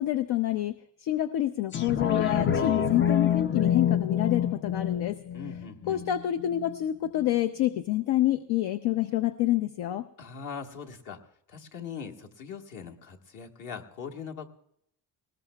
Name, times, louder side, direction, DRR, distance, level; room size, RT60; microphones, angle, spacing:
voice 1, 0.0-5.2 5.9-10.1, left 13 dB, 65° left, 9 dB, 0.7 m, -27 dB
sound 1, 1.7-6.8 7.2-7.3, left 9 dB, 30° left, 0.5 m, -27 dB
voice 2, 5.3-6.1 10.2-11.2 11.5-14.5, left 6 dB, 45° left, 2 dB, 1.5 m, -41 dB
20.0 x 19.0 x 2.3 m, 0.72 s
cardioid pair, 165°, 43 cm